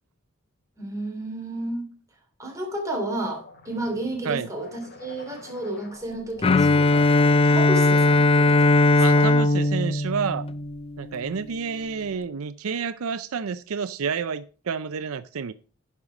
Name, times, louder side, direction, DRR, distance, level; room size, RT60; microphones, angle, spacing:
voice 1, 0.8-1.9 2.4-9.3, right 1 dB, 15° right, 1 dB, 2.9 m, -32 dB
sound 1, 3.4-9.4, left 2 dB, 50° left, 1.9 m, -48 dB
Bowed string instrument, 6.4-11.3, left 2 dB, 25° left, 0.4 m, -19 dB
voice 2, 9.0-10.5 11.0-15.5, right 6 dB, 85° right, 14 dB, 0.5 m, -29 dB
11.0 x 5.6 x 4.9 m, 0.37 s
head